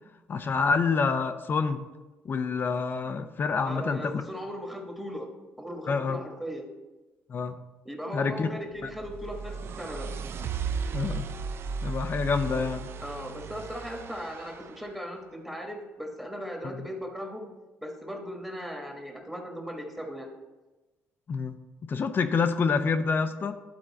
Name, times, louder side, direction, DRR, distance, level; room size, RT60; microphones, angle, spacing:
voice 1, 0.3-1.8 2.2-4.2 5.9-6.2 7.3-7.6 8.1-8.5 8.8-8.9 10.9-11.2 11.8-12.9 16.6-16.8 21.3-21.6 21.8-23.5, left 5 dB, 45° left, 8 dB, 0.5 m, -27 dB
voice 2, 3.6-5.3 5.6-6.7 7.8-10.1 13.0-17.5 17.8-20.3, equal, 5° right, 1 dB, 1.4 m, -38 dB
sound 1, 8.8-14.9, right 5 dB, 55° right, 0.4 m, -35 dB
11.0 x 3.7 x 4.1 m, 1.1 s
supercardioid pair, 80°, 5 cm